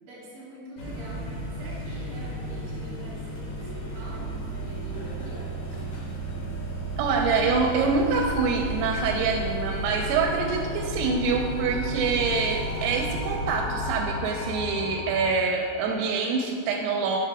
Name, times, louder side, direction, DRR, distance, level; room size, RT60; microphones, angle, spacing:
voice 1, 0.0-5.4, equal, 60° right, -8 dB, 1.5 m, -45 dB
sound 1, 0.8-14.0, right 2 dB, 70° left, 1.8 m, -33 dB
sound 2, 6.9-15.3, left 3 dB, 85° left, 3.3 m, -40 dB
voice 2, 7.0-17.2, right 4 dB, 85° right, 0 dB, 3.2 m, -25 dB
7.9 x 5.8 x 3.5 m, 2.4 s
omnidirectional pair, 6.0 m